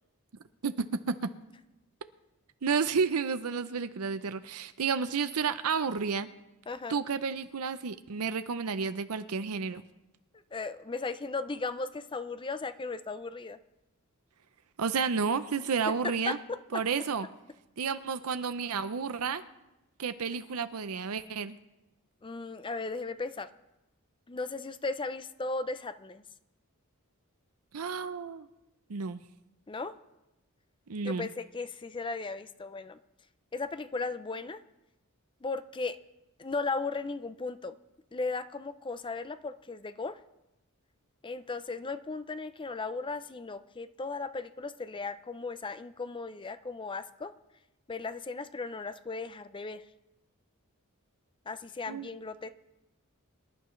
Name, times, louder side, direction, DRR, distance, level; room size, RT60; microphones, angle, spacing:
voice 1, 0.6-1.3 2.6-6.3 6.9-9.8 14.8-16.4 16.7-17.3 17.8-19.4 20.0-21.6 27.7-28.5 28.9-29.2 30.9-31.3 51.9-52.1, right 5 dB, 80° right, 11 dB, 0.6 m, -31 dB
voice 2, 6.7-7.0 10.5-13.6 15.9-16.8 22.2-23.5 24.3-26.2 29.7-29.9 31.0-33.0 33.5-34.6 35.4-36.0 36.4-37.7 38.1-40.2 41.2-47.3 47.9-49.8 51.5-52.5, left 3 dB, 20° left, 12 dB, 0.5 m, -36 dB
25.0 x 11.5 x 3.2 m, 0.96 s
head